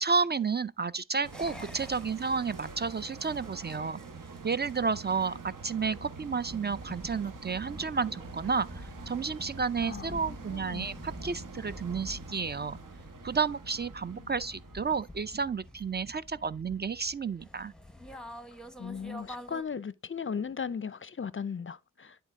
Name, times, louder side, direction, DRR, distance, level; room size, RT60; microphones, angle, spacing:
voice 1, 0.0-4.0 4.4-12.8 13.2-17.7, right 5 dB, 30° right, 0.4 m, -31 dB
sound 1, 1.2-15.9 16.2-16.3, right 4 dB, 70° right, 1.4 m, -46 dB
sound 2, 1.3-19.6, left 1 dB, ahead, 1.0 m, -48 dB
voice 2, 9.8-10.9 14.1-14.3 18.8-22.2, left 6 dB, 40° left, 0.5 m, -37 dB
10.0 x 3.9 x 3.6 m
cardioid pair, 60°, 33 cm